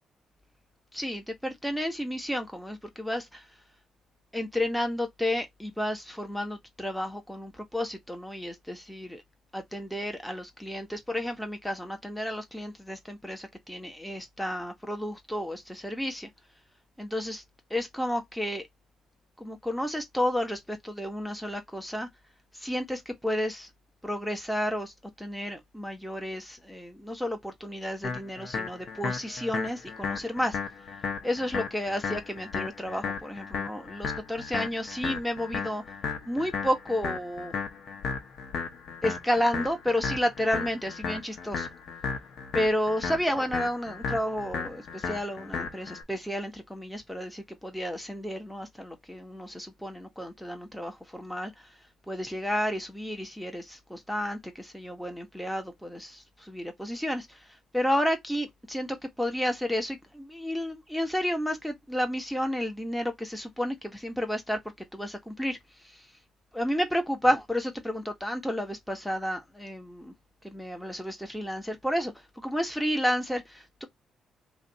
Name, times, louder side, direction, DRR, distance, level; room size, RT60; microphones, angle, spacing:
voice 1, 0.9-3.4 4.3-9.2 9.5-16.3 17.0-17.4 17.7-18.6 19.4-22.1 22.5-23.7 24.0-30.6 31.2-35.8 36.3-37.5 39.0-41.7 42.5-51.7 52.1-57.5 57.7-64.6 64.9-65.6 65.8-66.1 66.5-70.1 70.4-73.9, equal, ahead, 1.2 m, -31 dB
sound 1, 28.0-46.0, left 5 dB, 60° left, 1.1 m, -35 dB
3.2 x 2.6 x 4.0 m
cardioid pair, 90°, 0 cm